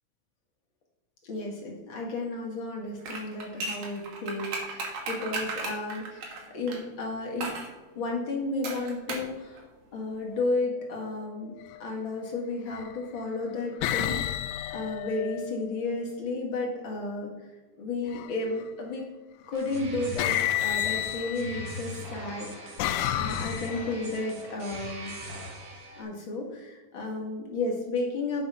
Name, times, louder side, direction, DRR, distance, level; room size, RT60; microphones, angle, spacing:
voice 1, 1.2-7.5 8.0-9.6 9.9-17.3 17.8-19.0 19.5-22.7 23.1-25.1 26.0-28.5, left 2 dB, 40° left, -1 dB, 2.2 m, -33 dB
sound 1, 3.0-6.8 7.4-7.7 8.6-9.3 9.6-9.7, right 3 dB, 90° right, 3.5 m, -35 dB
sound 2, 11.5-11.8 12.7-13.2 13.8-15.9 18.1-18.6 19.7-19.8 20.2-21.8 22.4-24.1, left 13 dB, 80° left, 1.7 m, -31 dB
sound 3, 19.5-26.0, equal, 45° right, 1.3 m, -40 dB
8.5 x 7.2 x 5.6 m, 1.2 s
omnidirectional pair, 3.8 m